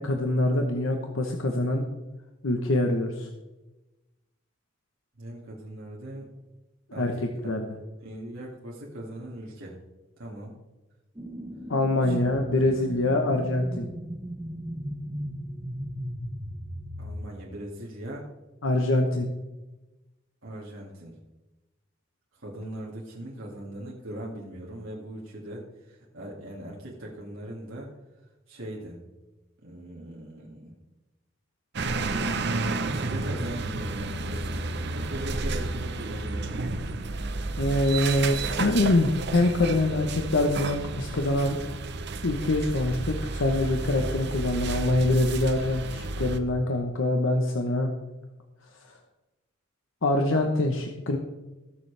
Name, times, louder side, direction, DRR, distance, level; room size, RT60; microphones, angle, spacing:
voice 1, 0.0-1.8 2.4-3.3 7.0-7.1 7.4-7.7 11.7-13.9 18.6-19.3 37.6-41.6 42.2-47.9 50.0-51.2, left 2 dB, 80° left, 3 dB, 1.0 m, -24 dB
voice 2, 5.2-6.3 6.9-7.1 8.0-9.8 10.2-10.5 12.0-12.2 17.0-18.2 20.4-21.1 22.3-27.9 28.5-29.0 29.6-30.7 32.8-36.6, right 1 dB, 90° right, -4 dB, 2.2 m, -39 dB
sound 1, 11.1-17.1, equal, 20° right, 1.3 m, -37 dB
sound 2, 31.7-46.4, right 3 dB, 60° right, 0.8 m, -31 dB
19.5 x 7.1 x 3.4 m, 1.1 s
head